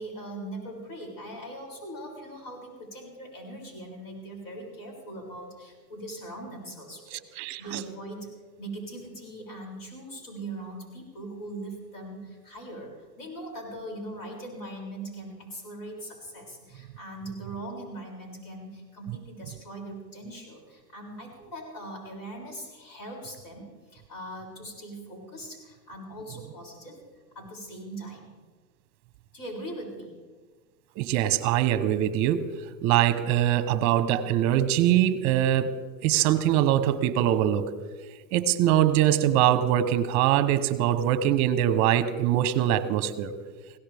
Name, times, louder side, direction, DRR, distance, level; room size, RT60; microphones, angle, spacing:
voice 1, 0.0-8.3 8.6-27.0 27.4-28.3 29.3-30.1, right 1 dB, 45° left, 6.9 m, -40 dB
voice 2, 7.1-7.8 31.0-32.5 32.8-35.7 36.0-37.7 38.3-43.3, right 11 dB, 35° right, 1.0 m, -23 dB
21.5 x 17.5 x 3.5 m
hypercardioid pair, 130°, 50 cm